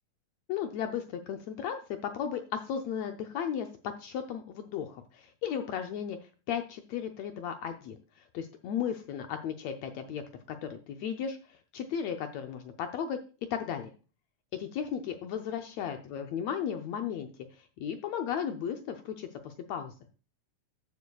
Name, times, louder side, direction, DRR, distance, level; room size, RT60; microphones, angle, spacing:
voice 1, 0.5-3.7 4.0-6.2 6.5-8.0 8.3-10.2 10.5-13.2 13.5-13.9 14.5-19.9, left 8 dB, 75° left, 5 dB, 1.6 m, -35 dB
15.0 x 7.0 x 2.3 m, 0.35 s
omnidirectional pair, 3.7 m